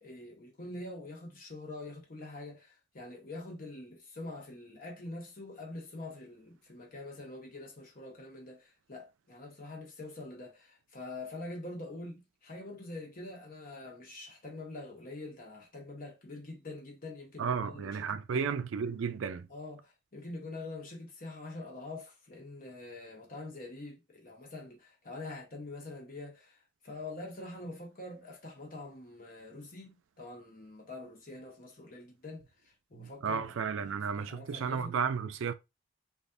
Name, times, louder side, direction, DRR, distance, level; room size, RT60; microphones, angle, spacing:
voice 1, 0.0-18.5 19.5-35.0, left 2 dB, 45° left, 1.0 m, -45 dB
voice 2, 17.4-19.5 32.9-35.5, right 6 dB, 75° right, 0.4 m, -33 dB
3.3 x 2.4 x 2.5 m
head